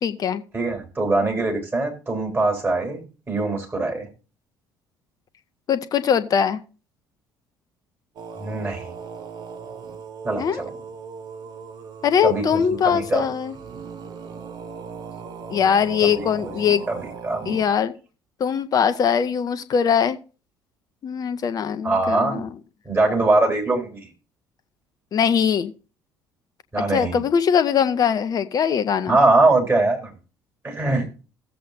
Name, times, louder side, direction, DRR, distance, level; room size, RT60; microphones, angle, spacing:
voice 1, 0.0-0.4 5.7-6.6 10.4-10.6 12.0-13.5 15.5-16.9 17.5-17.9 18.4-20.2 21.0-22.5 25.1-25.7 26.9-29.2, left 7 dB, 40° left, 12 dB, 0.9 m, -21 dB
voice 2, 0.5-4.1 8.4-8.9 10.2-10.7 12.2-12.4 12.8-13.3 16.0-16.5 16.9-17.6 21.8-22.5 22.9-24.1 26.7-27.2 29.1-30.1 30.6-31.1, right 2 dB, 25° right, 1 dB, 3.7 m, -22 dB
sound 1, 8.2-17.6, right 5 dB, 45° right, 1.3 m, -38 dB
16.5 x 7.6 x 2.7 m, 0.35 s
figure-of-eight pair, 55°, 10 cm